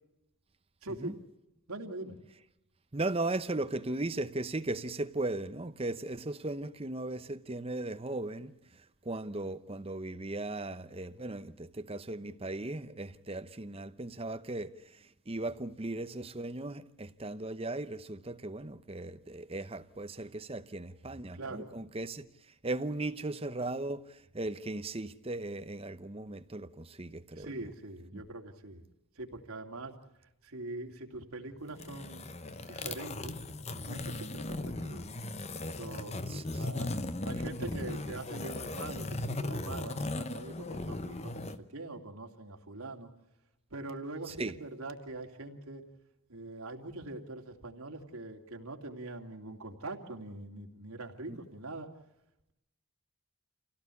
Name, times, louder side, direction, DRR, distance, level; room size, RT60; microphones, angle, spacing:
voice 1, 0.8-1.2 1.7-2.1 21.3-21.8 27.4-28.8 29.2-29.9 30.4-32.2 32.6-33.4 33.8-35.1 35.6-36.2 36.6-36.9 37.2-43.1 43.7-45.8 46.3-51.9, right 2 dB, 80° right, 2.8 m, -43 dB
voice 2, 2.9-22.3 22.6-27.6 28.1-28.2 36.3-36.7 44.3-44.6 51.3-51.4, right 2 dB, 25° right, 0.9 m, -37 dB
sound 1, 31.7-41.6, left 2 dB, 30° left, 0.9 m, -37 dB
27.0 x 17.0 x 8.5 m
head